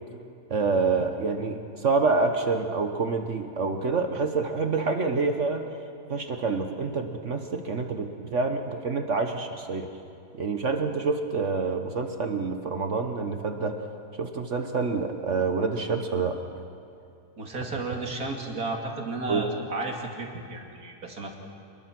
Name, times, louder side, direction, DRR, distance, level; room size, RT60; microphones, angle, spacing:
voice 1, 0.5-5.7 6.1-9.9 10.4-13.8 14.2-16.4 19.3-19.4, right 4 dB, 55° right, 6 dB, 1.4 m, -27 dB
voice 2, 17.4-21.4, right 2 dB, 70° right, 1 dB, 3.0 m, -33 dB
27.0 x 21.5 x 6.1 m, 2.6 s
omnidirectional pair, 1.6 m